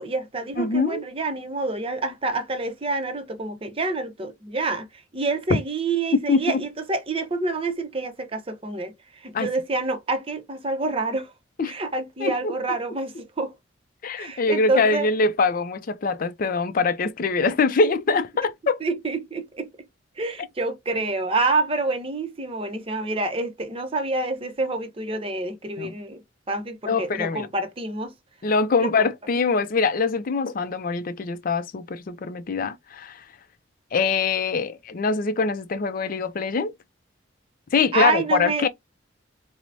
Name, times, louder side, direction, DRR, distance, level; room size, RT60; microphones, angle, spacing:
voice 1, 0.0-4.9 5.1-11.3 11.7-13.5 14.2-15.1 18.8-19.7 20.2-26.2 26.5-28.1 28.8-29.1 37.9-38.7, right 3 dB, 30° right, 0.6 m, -27 dB
voice 2, 0.6-1.0 6.1-6.6 9.3-9.5 11.6-11.7 12.2-12.5 14.0-18.8 25.8-25.9 26.9-27.5 28.4-33.2 33.9-36.7 37.7-38.7, left 4 dB, 45° left, 0.4 m, -23 dB
4.5 x 2.1 x 2.6 m
head